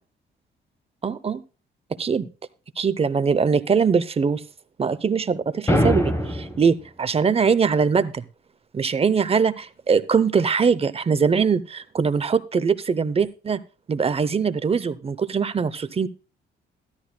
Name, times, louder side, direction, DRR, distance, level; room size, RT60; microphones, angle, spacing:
voice 1, 1.0-1.4 2.0-2.3 2.8-4.4 4.8-8.2 8.7-13.6 13.9-16.1, right 5 dB, 30° right, 14 dB, 0.7 m, -22 dB
sound 1, 5.7-6.7, equal, 15° left, 1.1 m, -21 dB
13.0 x 11.5 x 2.2 m, 0.33 s
cardioid pair, 90°, 20 cm